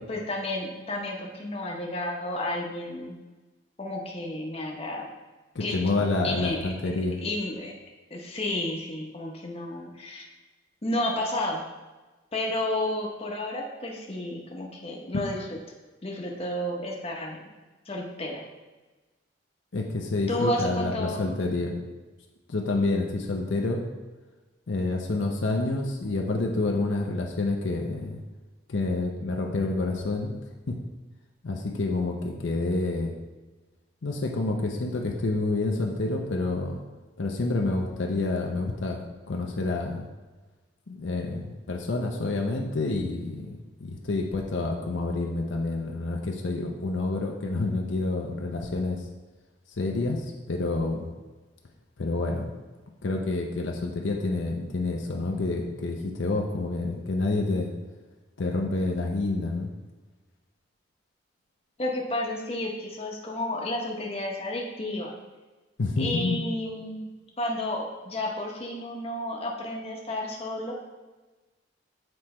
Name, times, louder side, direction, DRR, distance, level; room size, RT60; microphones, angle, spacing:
voice 1, 0.1-3.2 3.8-5.1 5.6-5.8 6.2-6.7 7.2-7.8 8.1-10.2 10.8-11.6 12.3-15.4 16.0-17.4 17.9-18.4 20.3-21.2 61.8-65.2 66.0-67.1 67.4-70.7, left 1 dB, 30° left, 0 dB, 0.9 m, -31 dB
voice 2, 5.5-7.2 15.1-15.2 19.7-21.8 22.5-23.8 24.7-28.2 28.7-30.3 30.7-30.8 31.4-33.2 34.0-36.8 37.2-40.1 40.9-49.0 49.8-51.1 52.0-52.6 53.0-57.7 58.4-59.7 65.8-66.4, left 2 dB, 75° left, 1 dB, 0.6 m, -28 dB
7.8 x 3.2 x 4.3 m, 1.2 s
head